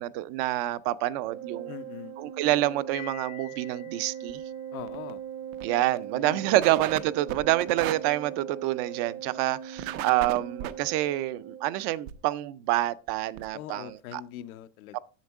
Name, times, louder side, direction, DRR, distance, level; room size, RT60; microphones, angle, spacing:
voice 1, 0.0-1.7 2.2-4.4 5.6-14.2 14.9-15.0, right 15 dB, 45° right, 0.4 m, -27 dB
Organ, 1.2-12.0, right 9 dB, 60° right, 1.1 m, -40 dB
voice 2, 1.7-2.1 4.7-5.2 6.1-6.7 13.5-15.0, left 11 dB, 90° left, 0.9 m, -42 dB
Piano, 2.9-4.9, left 17 dB, 45° left, 0.6 m, -47 dB
sound 1, 4.3-4.4 4.8-5.1 5.5-5.7 6.0-6.1 6.6-7.0 7.3-7.9 9.8-10.7 12.1-12.2 12.8-12.9 13.1-13.2 13.4-13.5, right 12 dB, 80° right, 0.9 m, -34 dB
10.5 x 7.2 x 3.5 m
supercardioid pair, 150°, 41 cm